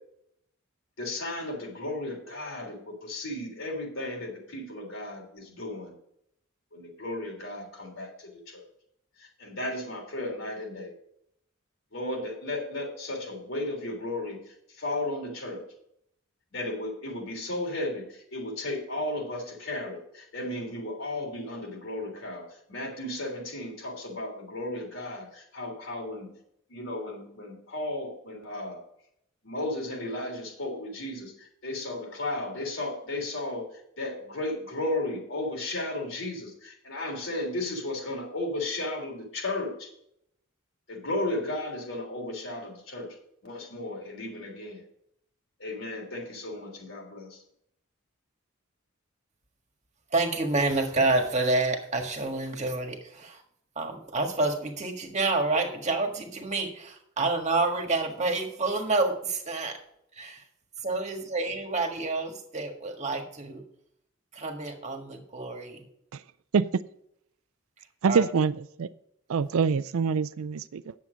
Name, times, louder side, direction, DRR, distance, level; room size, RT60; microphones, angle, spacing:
voice 1, 1.0-6.0 6.7-8.6 9.2-10.9 11.9-15.6 16.5-26.4 26.7-28.8 29.4-39.9 40.9-43.1 43.4-44.8 45.6-47.4, left 2 dB, 70° left, 3.5 m, -34 dB
voice 2, 50.1-53.4 53.7-59.8 60.1-60.4 60.8-63.6 64.3-65.9 68.1-68.2, right 3 dB, 35° right, 1.7 m, -28 dB
voice 3, 68.0-68.9 69.3-70.9, right 5 dB, 90° right, 0.4 m, -25 dB
9.8 x 7.5 x 5.1 m
head